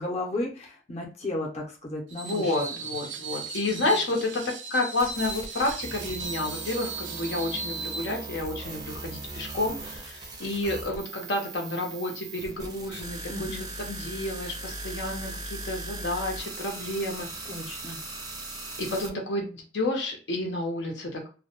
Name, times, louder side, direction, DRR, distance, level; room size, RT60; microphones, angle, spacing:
voice 1, 0.0-2.8 3.7-4.0 13.3-13.7 17.4-18.0, left 1 dB, 35° left, -1 dB, 0.6 m, -34 dB
Screech, 2.1-8.1, right 4 dB, 90° right, 0.5 m, -37 dB
voice 2, 2.2-4.4 4.7-13.5 13.8-17.3 18.8-21.3, left 2 dB, 80° left, 1 dB, 0.7 m, -30 dB
sound 1, 5.0-19.1, right 3 dB, 20° right, 0.4 m, -39 dB
2.2 x 2.1 x 2.8 m, 0.36 s
head